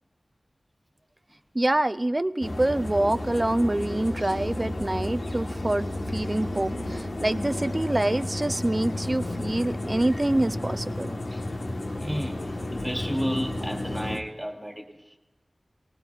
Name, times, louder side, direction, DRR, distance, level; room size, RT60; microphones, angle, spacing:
voice 1, 1.5-11.1, right 1 dB, 25° right, 14 dB, 0.4 m, -26 dB
sound 1, 2.4-14.2, left 1 dB, 65° left, 1.3 m, -32 dB
voice 2, 12.0-15.2, equal, 10° right, 2 dB, 2.5 m, -32 dB
23.5 x 19.5 x 2.4 m, 1.1 s
wide cardioid pair, 75°, 0 cm